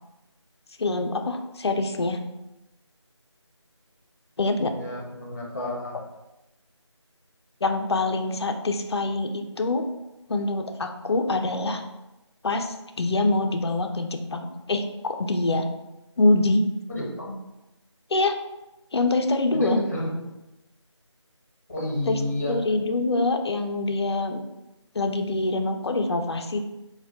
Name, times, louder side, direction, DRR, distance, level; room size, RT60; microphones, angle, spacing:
voice 1, 0.8-2.2 4.4-4.7 7.6-9.9 10.3-11.8 12.4-15.7 16.2-16.7 18.1-18.4 18.9-19.8 22.1-22.2 22.5-24.4 24.9-26.6, left 2 dB, 60° left, 5 dB, 0.4 m, -25 dB
voice 2, 4.6-6.0 16.9-17.3 19.5-20.2 21.7-22.6, left 1 dB, 35° left, -3 dB, 0.7 m, -29 dB
3.3 x 2.2 x 2.6 m, 0.97 s
figure-of-eight pair, 170°, 16 cm